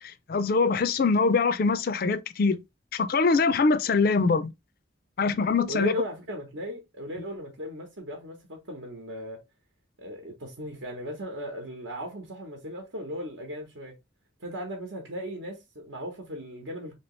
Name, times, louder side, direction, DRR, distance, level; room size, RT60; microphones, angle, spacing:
voice 1, 0.0-2.6 2.9-4.5 5.2-6.0, left 4 dB, 50° left, 0.4 m, -23 dB
voice 2, 5.7-9.4 10.0-13.9 14.4-16.9, equal, 75° right, 0.9 m, -37 dB
3.0 x 2.8 x 3.1 m
head